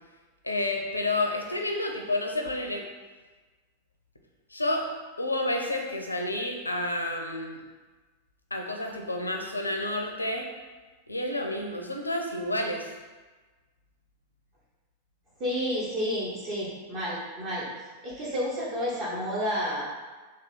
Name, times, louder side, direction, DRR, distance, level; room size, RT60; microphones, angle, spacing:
voice 1, 0.4-2.8 4.5-4.9 5.2-7.6 8.5-10.5 11.1-12.9, left 1 dB, 85° left, 3 dB, 0.5 m, -30 dB
voice 2, 15.4-17.7 18.0-19.8, equal, 35° right, -8 dB, 1.0 m, -30 dB
3.5 x 2.5 x 4.2 m, 1.3 s
figure-of-eight pair, 90°, 0 cm